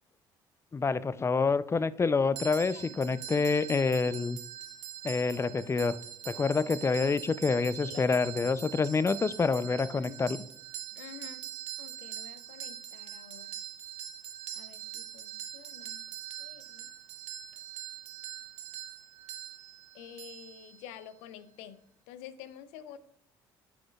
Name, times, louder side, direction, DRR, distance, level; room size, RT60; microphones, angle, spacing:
voice 1, 0.7-4.4 5.0-6.0 6.3-10.4, left 4 dB, 25° left, 16 dB, 0.5 m, -27 dB
sound 1, 2.4-21.1, right 11 dB, 75° right, 1.0 m, -43 dB
voice 2, 2.7-3.0 7.8-8.1 10.0-10.1 10.9-11.5 11.8-13.6 14.6-16.0 16.4-16.9 19.9-23.0, left 10 dB, 80° left, 13 dB, 0.6 m, -49 dB
12.0 x 5.1 x 2.3 m, 0.71 s
supercardioid pair, 65°, 11 cm